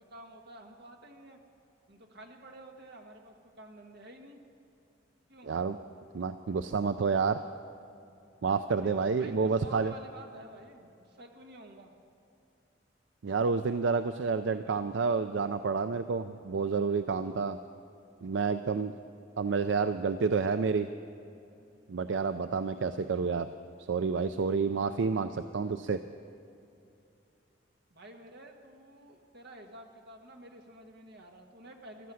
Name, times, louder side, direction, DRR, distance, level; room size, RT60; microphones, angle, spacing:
voice 1, 0.0-1.4 1.9-4.4 5.3-5.5 8.8-11.9 27.9-32.1, right 1 dB, 60° right, 3 dB, 1.6 m, -50 dB
voice 2, 5.4-5.8 6.1-7.4 8.4-9.9 13.2-17.6 18.2-18.9 19.4-20.9 21.9-23.5 23.9-26.0, right 5 dB, 75° right, 10 dB, 0.4 m, -29 dB
15.0 x 13.0 x 6.3 m, 2.6 s
head